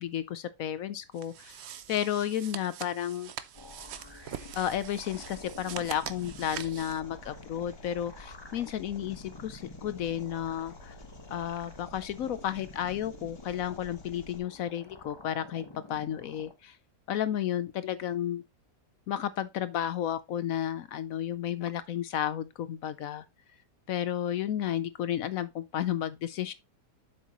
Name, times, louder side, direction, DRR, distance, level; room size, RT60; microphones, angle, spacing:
voice 1, 0.0-1.6 1.9-3.3 4.5-10.9 11.3-15.6 15.9-16.8 17.1-18.4 19.1-23.2 23.9-26.5, left 10 dB, 70° left, 0.9 m, -32 dB
sound 1, 1.1-7.0, right 9 dB, 60° right, 0.7 m, -43 dB
sound 2, 3.5-16.6, left 3 dB, 25° left, 0.7 m, -49 dB
Engine, 4.4-14.4, left 1 dB, 40° left, 1.7 m, -51 dB
7.9 x 6.5 x 3.0 m
omnidirectional pair, 1.7 m